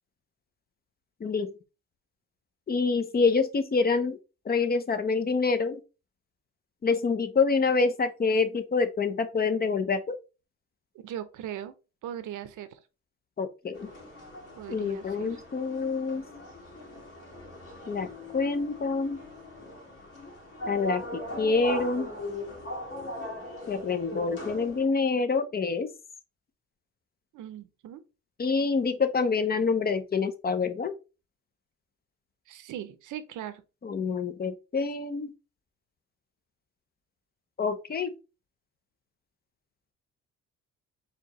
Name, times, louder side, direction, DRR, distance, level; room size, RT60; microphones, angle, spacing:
voice 1, 1.2-1.5 2.7-4.2 4.4-5.8 6.8-10.2 13.4-13.9 14.7-16.2 17.9-19.2 20.7-22.1 23.7-25.9 28.4-30.9 33.8-35.3 37.6-38.1, left 4 dB, 30° left, 0.6 m, -27 dB
voice 2, 10.9-11.7 12.0-12.8 14.6-15.4 27.3-28.0 32.5-33.6, right 10 dB, 80° right, 0.7 m, -39 dB
sound 1, 13.7-24.8, left 1 dB, 55° left, 2.2 m, -40 dB
4.2 x 2.9 x 3.0 m
cardioid pair, 90°, 30 cm